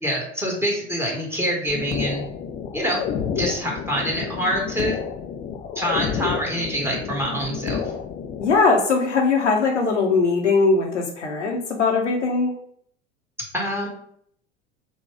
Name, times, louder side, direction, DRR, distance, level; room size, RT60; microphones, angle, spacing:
voice 1, 0.0-2.2 2.7-3.0 3.3-5.0 5.7-7.9 13.5-13.9, equal, 5° right, -2 dB, 1.2 m, -25 dB
sound 1, 1.7-8.7, left 7 dB, 20° left, 0.3 m, -30 dB
voice 2, 8.4-12.5, left 4 dB, 80° left, 1 dB, 0.8 m, -20 dB
4.1 x 2.3 x 4.5 m, 0.65 s
figure-of-eight pair, 70°, 35 cm